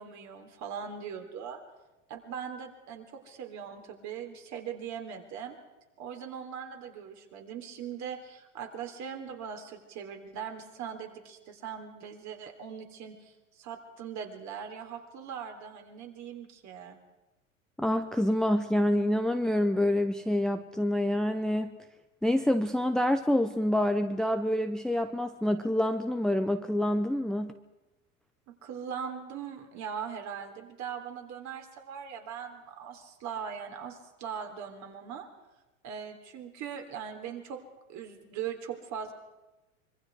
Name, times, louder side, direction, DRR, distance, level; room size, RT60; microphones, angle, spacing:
voice 1, 0.0-1.6 2.1-5.6 6.0-17.0 28.6-35.3 35.8-37.6 37.9-39.1, right 7 dB, 45° right, 4 dB, 3.7 m, -40 dB
voice 2, 17.8-21.8 22.2-27.6, left 1 dB, ahead, 8 dB, 0.7 m, -27 dB
25.5 x 23.0 x 4.8 m, 1.1 s
hypercardioid pair, 105°, 41 cm